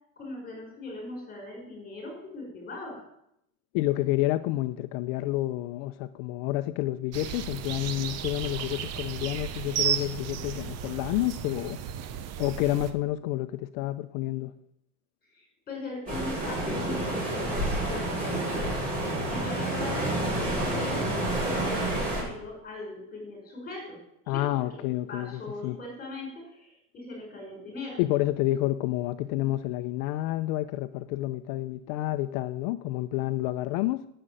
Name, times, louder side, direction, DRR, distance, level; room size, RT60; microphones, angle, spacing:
voice 1, 0.2-3.0 15.3-18.1 18.4-18.7 19.3-21.1 21.4-24.0 24.2-24.8 25.1-28.0, left 2 dB, 20° left, 5.4 m, -40 dB
voice 2, 3.7-11.8 12.4-14.5 24.3-25.8 28.0-34.1, left 16 dB, 80° left, 0.8 m, -29 dB
sound 1, 7.1-12.9, right 9 dB, 40° right, 0.9 m, -34 dB
sound 2, 16.1-22.2, right 1 dB, 20° right, 6.7 m, -29 dB
11.0 x 7.8 x 9.0 m
cardioid pair, 180°, 42 cm